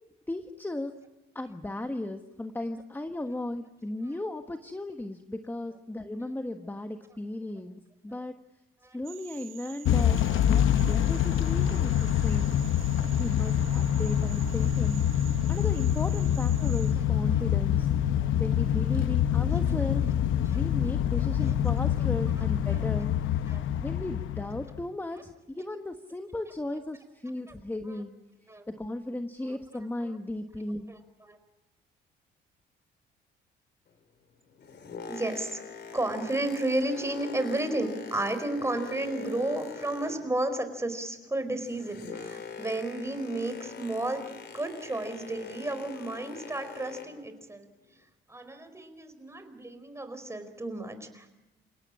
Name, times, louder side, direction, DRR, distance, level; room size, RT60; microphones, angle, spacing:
voice 1, 0.3-1.0 1.3-8.3 8.9-12.6 13.1-15.0 15.5-17.9 18.4-20.1 20.5-23.1 23.8-28.1 28.7-30.9, left 1 dB, 10° left, 6 dB, 1.4 m, -36 dB
sound 1, 9.0-16.9, right 11 dB, 85° right, 2.9 m, -48 dB
Motor vehicle (road) / Engine starting / Accelerating revving vroom, 9.9-24.8, left 10 dB, 80° left, 0.9 m, -26 dB
voice 2, 30.9-31.4 35.1-35.6 35.9-44.2 44.5-47.7 48.3-51.3, right 2 dB, 15° right, 9 dB, 4.6 m, -32 dB
Boat Water vehicle, 34.4-40.5 40.8-47.3 47.9-48.0, left 6 dB, 60° left, 3.6 m, -43 dB
29.5 x 17.5 x 8.6 m, 1.0 s
cardioid pair, 90°, 20 cm